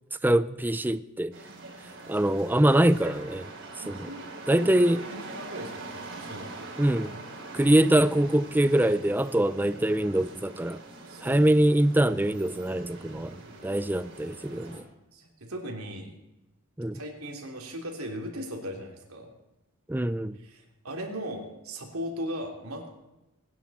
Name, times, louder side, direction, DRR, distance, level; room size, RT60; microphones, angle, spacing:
voice 1, 0.2-1.3 2.1-3.5 3.9-4.1 4.5-5.0 6.8-7.1 7.5-10.8 11.2-13.4 13.6-14.8 16.8-17.0 19.9-20.4, right 1 dB, 10° right, 14 dB, 0.4 m, -23 dB
sound 1, 1.3-14.8, right 2 dB, 60° right, 3.5 m, -43 dB
voice 2, 3.7-6.7 11.0-11.5 14.2-14.3 14.7-16.2 16.9-19.3 20.4-22.9, equal, 75° right, 1 dB, 3.2 m, -38 dB
24.5 x 10.5 x 4.3 m, 0.97 s
head